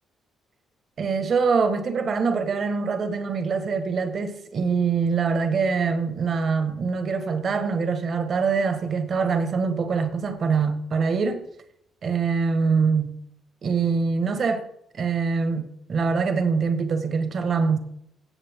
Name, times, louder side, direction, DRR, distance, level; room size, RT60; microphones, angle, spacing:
voice 1, 1.0-11.4 12.0-13.2 13.6-14.6 15.0-17.8, right 5 dB, 55° right, 1.6 m, -24 dB
17.0 x 6.7 x 3.7 m
cardioid pair, 90°, 0 cm